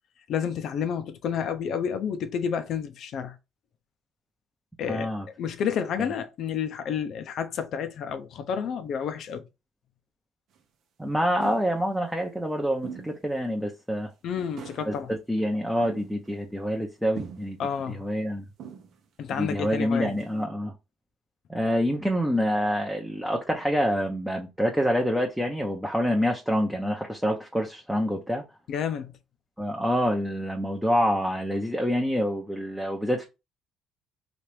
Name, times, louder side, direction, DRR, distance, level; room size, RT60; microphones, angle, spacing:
voice 1, 0.3-3.4 4.8-5.1 5.4-9.4 14.2-15.1 17.6-18.0 19.2-20.1 28.7-29.2, left 7 dB, 65° left, 0.5 m, -30 dB
voice 2, 4.9-5.3 11.0-14.1 14.9-17.6 17.9-18.5 19.4-20.7 21.5-28.4 29.6-33.3, equal, 5° right, 0.6 m, -27 dB
sound 1, 10.6-10.7 11.4-11.8 12.8-13.2 13.6-13.7 14.4-14.9 15.8-16.4 17.1-17.6 18.6-19.0 19.6-19.7 20.0-20.4, right 7 dB, 70° right, 0.7 m, -42 dB
2.9 x 2.5 x 3.2 m
supercardioid pair, 80°, 0 cm